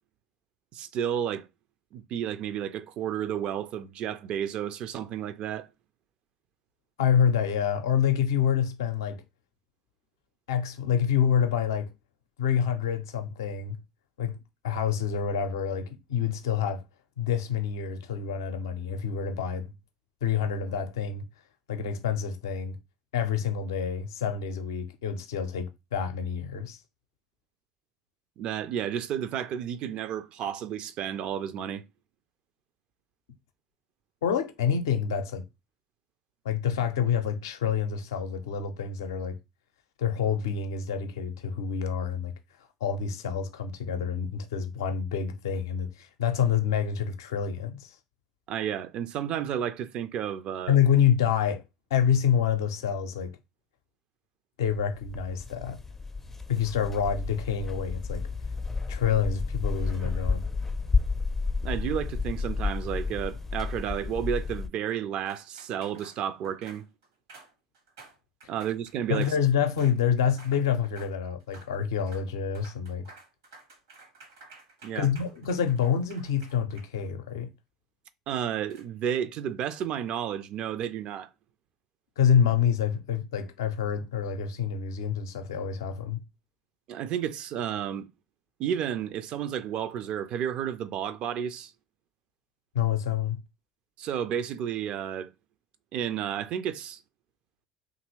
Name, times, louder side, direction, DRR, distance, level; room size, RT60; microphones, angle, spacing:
voice 1, 0.7-1.4 1.9-5.7 28.4-31.8 48.5-50.8 61.6-66.9 68.5-69.3 74.8-75.1 78.3-81.3 86.9-88.1 88.6-91.7 94.0-95.3 95.9-97.0, right 9 dB, 55° right, 0.4 m, -32 dB
voice 2, 7.0-9.2 10.5-11.9 12.4-13.8 14.2-14.4 14.6-16.8 17.2-19.7 20.2-21.2 21.7-22.8 23.1-26.8 34.2-35.4 36.4-39.4 40.0-42.3 42.8-48.0 50.7-51.6 51.9-53.4 54.6-55.8 56.5-58.2 58.9-60.4 69.1-73.1 74.9-77.5 82.2-86.2 92.7-93.4, left 8 dB, 75° left, 0.5 m, -27 dB
sound 1, 54.8-64.7, left 4 dB, 15° left, 0.4 m, -31 dB
sound 2, 59.8-60.6 62.7-63.6 65.3-69.4 69.8-70.0 70.3-70.6 70.8-71.1 71.4-71.7 72.0-72.3 72.5-77.3 78.7-78.8, right 3 dB, 80° right, 1.1 m, -53 dB
2.8 x 2.5 x 3.0 m
hypercardioid pair, 70°, 2 cm